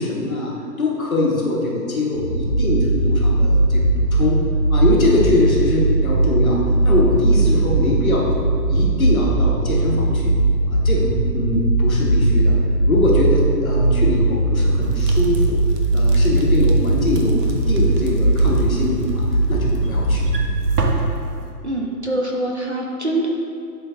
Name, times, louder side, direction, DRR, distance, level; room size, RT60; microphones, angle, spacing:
voice 1, 0.0-4.4 4.7-6.6 6.8-8.3 8.7-10.3 10.7-12.6 12.9-15.6 15.9-20.3, left 2 dB, 55° left, -3 dB, 1.5 m, -22 dB
sound 1, 2.1-20.7, right 2 dB, 20° right, 1.5 m, -19 dB
sound 2, 14.8-21.5, right 2 dB, 70° right, 0.9 m, -32 dB
voice 2, 21.6-23.3, right 1 dB, 45° right, -1 dB, 0.5 m, -24 dB
11.5 x 3.9 x 2.6 m, 2.4 s
hypercardioid pair, 175°, 50 cm